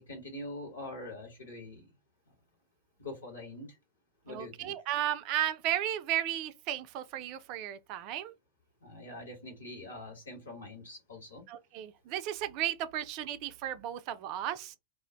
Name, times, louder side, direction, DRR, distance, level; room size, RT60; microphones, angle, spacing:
voice 1, 0.0-1.9 2.3-2.4 3.0-3.8 4.2-4.7 8.8-11.4, left 2 dB, 70° left, 1.3 m, -44 dB
voice 2, 4.3-8.3 11.5-14.8, right 12 dB, 40° right, 0.4 m, -34 dB
2.4 x 2.1 x 3.7 m
figure-of-eight pair, 90°, 0 cm